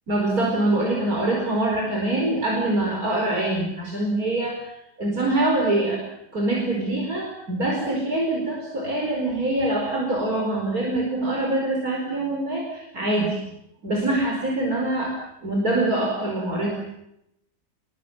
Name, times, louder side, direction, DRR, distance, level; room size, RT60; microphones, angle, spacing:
voice 1, 0.1-6.0 6.3-13.4 13.8-15.1 15.4-16.8, right 2 dB, 60° right, 0 dB, 5.4 m, -24 dB
27.0 x 22.0 x 8.9 m, 0.81 s
omnidirectional pair, 1.7 m